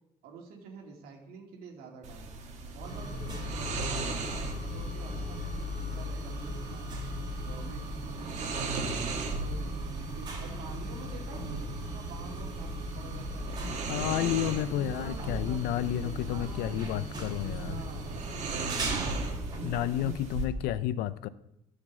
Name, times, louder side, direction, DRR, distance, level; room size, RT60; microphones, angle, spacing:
voice 1, 0.2-2.3 2.7-6.8 7.4-7.9 8.2-13.6 14.7-18.1, right 5 dB, 80° right, 0 dB, 2.3 m, -48 dB
sound 1, 2.0-20.5, right 4 dB, 50° right, 2.1 m, -39 dB
sound 2, 2.8-20.1, equal, 30° right, 3.4 m, -37 dB
voice 2, 13.9-17.8 19.6-21.3, left 12 dB, 85° left, 16 dB, 0.6 m, -31 dB
10.5 x 5.3 x 7.2 m, 0.84 s
cardioid pair, 130°, 15 cm